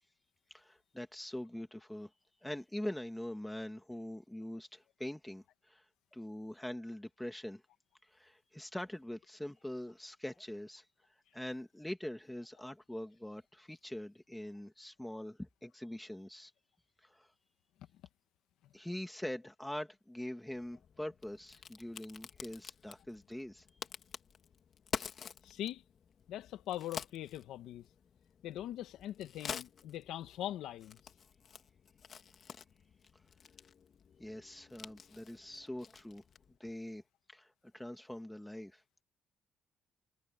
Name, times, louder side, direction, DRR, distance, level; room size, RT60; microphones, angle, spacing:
voice 1, 0.5-2.1 2.4-5.8 6.1-7.6 8.1-10.8 11.3-16.5 17.0-17.3 18.7-23.7 34.2-36.2 36.6-37.0 37.3-37.5 37.7-38.8, left 1 dB, 5° left, 2.4 m, -43 dB
Crack, 20.5-36.6, left 7 dB, 55° left, 2.0 m, -49 dB
voice 2, 25.4-25.8 26.3-27.9 28.4-31.0, left 12 dB, 85° left, 1.8 m, -41 dB
cardioid pair, 90°, 0 cm